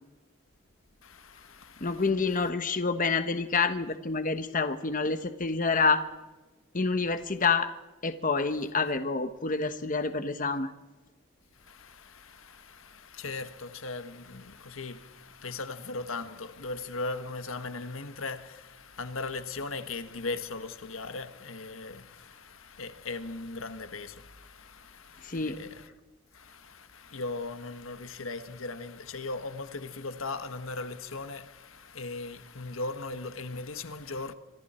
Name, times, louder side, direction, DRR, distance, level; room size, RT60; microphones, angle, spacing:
voice 1, 1.0-2.0 11.7-25.8 26.3-34.3, left 3 dB, 75° left, 1.5 m, -38 dB
voice 2, 1.8-6.0 6.7-7.7 8.0-10.7 25.2-25.6, left 4 dB, 40° left, 1.2 m, -28 dB
28.5 x 26.0 x 4.4 m
head